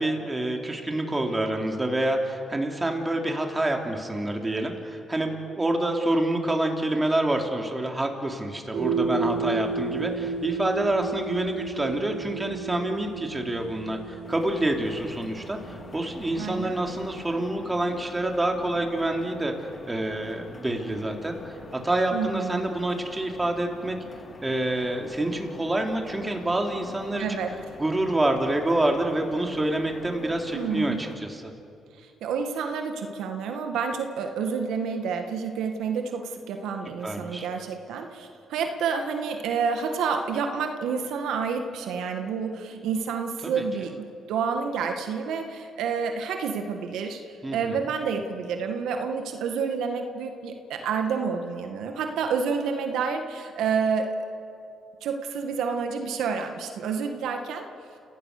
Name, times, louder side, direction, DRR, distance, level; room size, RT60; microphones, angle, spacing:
voice 1, 0.0-15.6 15.9-19.5 19.9-21.4 21.7-24.0 24.4-27.2 27.8-31.5 37.0-37.5 43.4-43.6 47.4-47.8, right 1 dB, 15° right, 2 dB, 3.1 m, -27 dB
sound 1, 8.7-17.2, right 4 dB, 65° right, 6.5 m, -33 dB
sound 2, 14.2-31.1, left 4 dB, 40° left, 2.3 m, -46 dB
voice 2, 16.4-16.8 22.1-22.7 27.2-27.5 30.5-31.0 32.0-47.2 47.5-54.1 55.0-57.7, right 5 dB, 85° right, 5 dB, 1.8 m, -29 dB
30.0 x 17.0 x 6.7 m, 2.5 s
cardioid pair, 90°, 0 cm